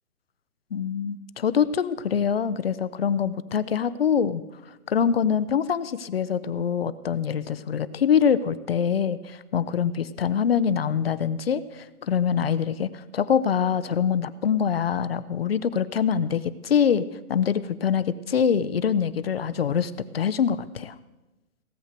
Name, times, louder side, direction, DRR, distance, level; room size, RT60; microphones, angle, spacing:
voice 1, 0.7-4.4 4.9-20.9, left 7 dB, 40° left, 16 dB, 0.5 m, -24 dB
17.0 x 7.8 x 6.6 m, 1.1 s
hypercardioid pair, 160°, 45 cm